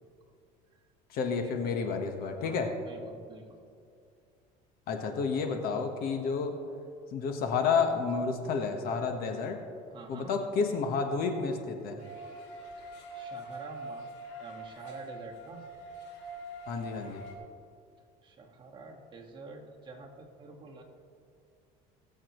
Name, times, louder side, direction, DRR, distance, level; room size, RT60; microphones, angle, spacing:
voice 1, 1.1-2.7 4.9-6.6 7.1-9.6 10.1-12.0 16.7-17.2, left 5 dB, 60° left, 5 dB, 1.3 m, -30 dB
voice 2, 2.4-3.6 9.9-10.3 12.8-14.0 14.4-15.6 18.2-20.8, right 3 dB, 30° right, 0 dB, 1.8 m, -48 dB
sound 1, 12.0-17.4, right 2 dB, 85° left, 2.4 m, -44 dB
21.0 x 7.3 x 3.1 m, 2.3 s
supercardioid pair, 115°, 17 cm